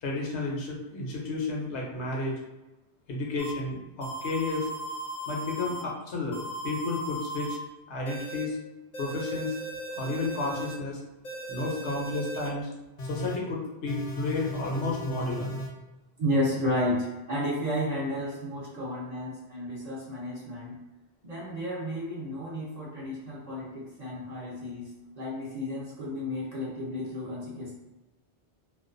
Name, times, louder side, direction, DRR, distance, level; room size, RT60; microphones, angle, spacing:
voice 1, 0.0-2.4 3.1-4.7 5.3-7.6 7.9-8.6 9.0-9.6 10.0-11.0 11.5-12.7 13.0-15.6, left 3 dB, 85° left, -2 dB, 0.9 m, -32 dB
sound 1, 3.4-3.5 4.0-5.8 6.3-7.6 8.1-8.4 8.9-10.7 11.2-12.5 13.0-13.4 13.9-15.7, right 1 dB, 50° left, 0.6 m, -37 dB
voice 2, 16.2-20.8 21.2-27.7, left 1 dB, 45° right, -5 dB, 0.6 m, -32 dB
2.4 x 2.2 x 2.5 m, 1.0 s
omnidirectional pair, 1.1 m